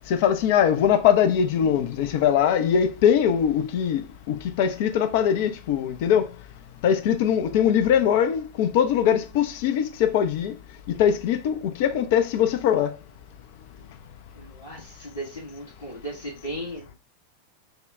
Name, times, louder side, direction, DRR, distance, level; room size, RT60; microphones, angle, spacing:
voice 1, 0.1-6.3 6.8-10.5 10.9-12.9, left 9 dB, 50° left, 0.6 m, -21 dB
voice 2, 14.3-17.0, right 1 dB, 70° left, 1.6 m, -36 dB
5.4 x 2.3 x 3.4 m
figure-of-eight pair, 90°, 0 cm